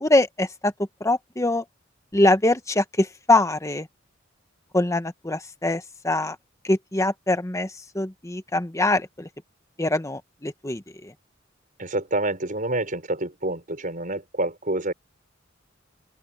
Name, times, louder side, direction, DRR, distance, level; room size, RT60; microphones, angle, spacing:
voice 1, 0.0-0.7 1.0-1.6 2.1-3.9 4.7-6.3 6.7-7.7 7.9-9.3 9.8-10.8, left 2 dB, 15° left, 1.2 m, -23 dB
voice 2, 11.8-14.9, right 2 dB, 45° right, 6.3 m, -27 dB
open air
head